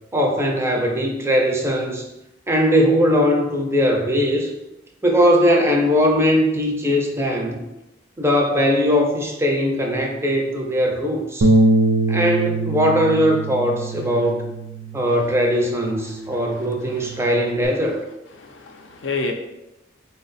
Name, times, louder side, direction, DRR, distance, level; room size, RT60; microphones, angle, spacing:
voice 1, 0.1-2.0 2.5-4.5 5.0-7.6 8.2-11.5 12.1-14.4 14.9-18.0, equal, 15° right, 1 dB, 0.4 m, -20 dB
Bass guitar, 11.4-15.9 16.3-17.7, right 2 dB, 80° right, 0.4 m, -23 dB
voice 2, 16.3-16.6 16.9-17.2 18.4-19.3, left 3 dB, 70° left, 3 dB, 0.5 m, -30 dB
3.9 x 2.1 x 4.0 m, 0.94 s
head